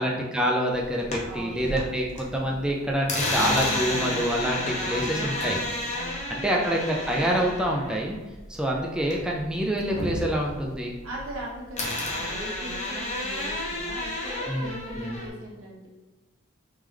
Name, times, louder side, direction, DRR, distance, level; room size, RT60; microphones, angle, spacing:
voice 1, 0.0-5.6 6.3-8.2 8.5-10.9 14.5-15.2, equal, 5° right, -2 dB, 0.3 m, -27 dB
sound 1, 0.8-2.2 2.5-9.4 9.7-11.4 11.8-15.3, left 1 dB, 35° left, 0.8 m, -31 dB
voice 2, 1.2-1.8 2.4-2.7 4.7-6.8 11.0-15.9, equal, 80° right, -4 dB, 1.2 m, -40 dB
3.5 x 3.2 x 3.3 m, 1.1 s
head